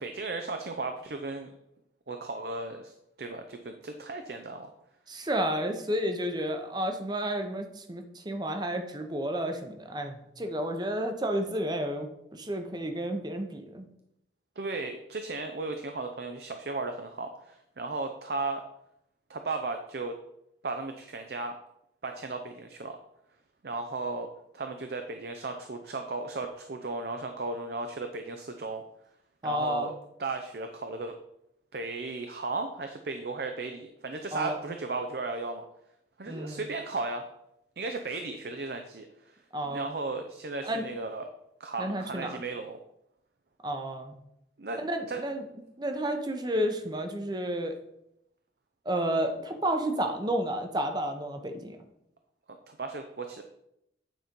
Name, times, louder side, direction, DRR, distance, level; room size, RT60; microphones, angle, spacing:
voice 1, 0.0-1.5 2.1-4.7 14.6-18.6 19.3-20.2 20.6-21.6 22.0-23.0 23.6-24.3 24.5-28.8 29.4-31.2 31.7-35.6 36.2-37.2 37.8-39.4 39.7-41.2 41.6-42.8 44.6-44.8 45.1-45.2 52.7-53.4, right 3 dB, 60° right, 6 dB, 0.6 m, -35 dB
voice 2, 5.1-13.9 29.4-29.9 34.3-34.6 36.3-36.6 39.5-39.9 40.6-40.8 41.8-42.4 43.6-44.2 44.8-45.4 45.8-47.8 48.8-51.8, right 1 dB, 25° right, 5 dB, 0.8 m, -31 dB
9.1 x 4.3 x 5.2 m, 0.81 s
head